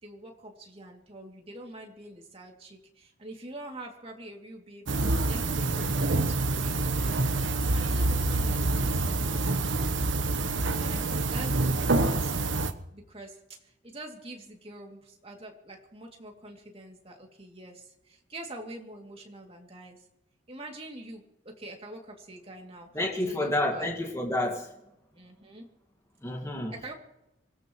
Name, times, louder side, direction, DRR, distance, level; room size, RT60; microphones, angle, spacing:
voice 1, 0.0-7.1 7.7-10.1 10.8-20.0 20.5-22.9 23.3-23.9 25.1-25.7 26.7-26.9, right 1 dB, 30° right, 2.7 m, -45 dB
sound 1, 4.9-12.7, right 2 dB, 80° right, 1.1 m, -27 dB
voice 2, 22.9-24.7 26.2-26.7, left 1 dB, 15° left, 1.9 m, -29 dB
25.0 x 17.5 x 3.2 m
head